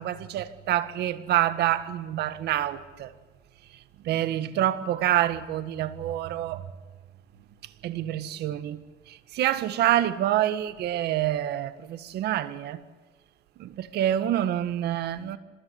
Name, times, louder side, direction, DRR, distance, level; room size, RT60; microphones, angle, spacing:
voice 1, 0.0-3.1 4.0-6.7 7.8-8.8 9.1-12.8 13.6-15.4, right 12 dB, 75° right, 1.7 m, -27 dB
26.0 x 20.5 x 9.7 m
cardioid pair, 110°, 17 cm